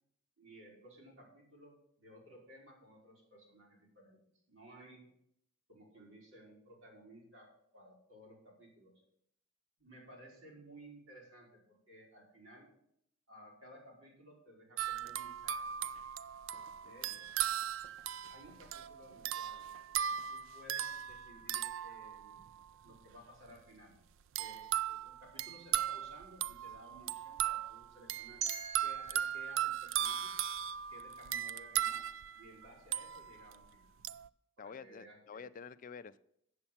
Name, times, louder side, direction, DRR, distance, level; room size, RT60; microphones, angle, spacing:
voice 1, 0.4-4.2 4.5-5.1 5.7-9.0 9.8-12.7 13.3-15.6 16.8-17.3 18.3-19.7 20.3-22.5 22.8-24.0 24.4-28.5 28.8-30.3 30.9-32.1 32.4-33.9 34.6-35.4, equal, 90° right, -3 dB, 3.9 m, -57 dB
sound 1, 14.8-22.6 24.4-33.6 34.0-34.3, right 10 dB, 70° right, 0.3 m, -38 dB
sound 2, 28.4-31.3, right 5 dB, 35° right, 0.9 m, -46 dB
voice 2, 34.6-36.2, left 6 dB, 40° left, 14 dB, 0.4 m, -49 dB
8.1 x 7.0 x 7.1 m, 0.71 s
head